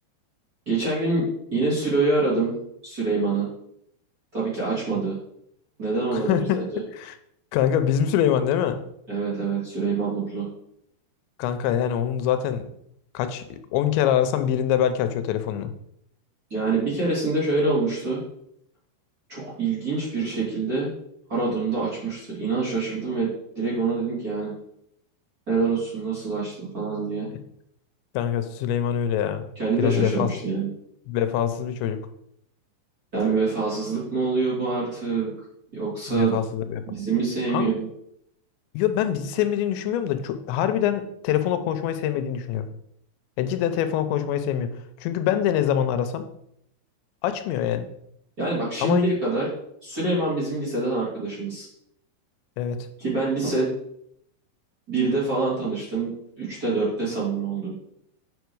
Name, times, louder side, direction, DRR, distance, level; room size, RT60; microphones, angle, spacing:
voice 1, 0.7-1.2 1.5-2.5 2.8-3.5 4.3-5.2 5.8-6.8 9.1-10.5 16.5-18.2 19.3-20.9 21.3-23.3 23.5-24.5 25.5-27.3 29.6-30.7 33.1-35.3 35.7-36.3 36.9-37.9 48.4-49.5 49.8-51.7 53.0-53.7 54.9-56.1 56.4-57.7, right 3 dB, 25° right, -8 dB, 2.3 m, -25 dB
voice 2, 6.1-6.6 6.9-7.1 7.5-8.8 11.4-12.7 13.1-15.7 28.1-29.5 29.8-30.3 31.1-32.0 36.1-36.8 37.5-37.7 38.7-42.7 43.4-44.7 45.0-46.3 47.2-47.9 48.8-49.1 52.6-52.8, left 10 dB, 85° left, 9 dB, 2.9 m, -24 dB
9.2 x 5.0 x 4.7 m, 0.73 s
omnidirectional pair, 5.1 m